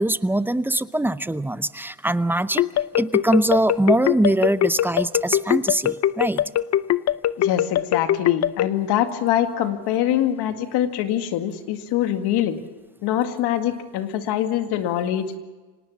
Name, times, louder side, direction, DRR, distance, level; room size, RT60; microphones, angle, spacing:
voice 1, 0.0-2.6 3.0-6.4, right 1 dB, 5° right, 14 dB, 0.6 m, -22 dB
sound 1, 2.6-8.7, left 12 dB, 45° left, 0.6 m, -20 dB
voice 2, 7.4-12.6 13.0-15.4, left 11 dB, 75° left, 7 dB, 2.2 m, -24 dB
25.5 x 19.0 x 7.2 m, 1.3 s
cardioid pair, 110°, 40 cm